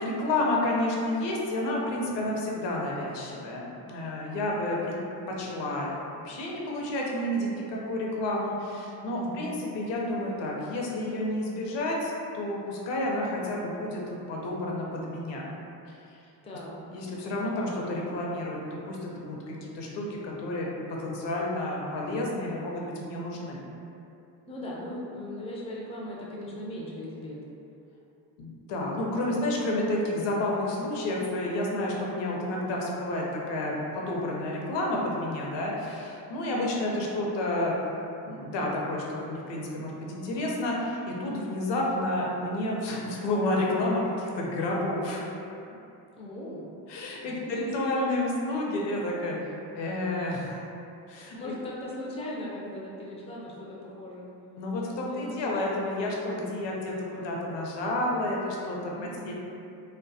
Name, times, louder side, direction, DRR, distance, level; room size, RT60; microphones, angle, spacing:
voice 1, 0.0-4.9 5.3-5.9 6.2-14.0 14.3-15.5 16.9-18.6 18.9-20.7 21.0-23.7 28.4-37.7 38.3-45.3 46.9-49.4 49.7-50.6 51.1-51.5 54.6-59.3, left 1 dB, 60° left, -3 dB, 0.6 m, -30 dB
voice 2, 9.1-9.6 16.4-16.8 24.5-27.4 46.2-46.6 47.2-48.3 51.3-54.3 55.0-55.6 58.9-59.3, left 1 dB, 15° left, -4 dB, 0.3 m, -38 dB
2.2 x 2.2 x 2.6 m, 2.7 s
cardioid pair, 80°, 48 cm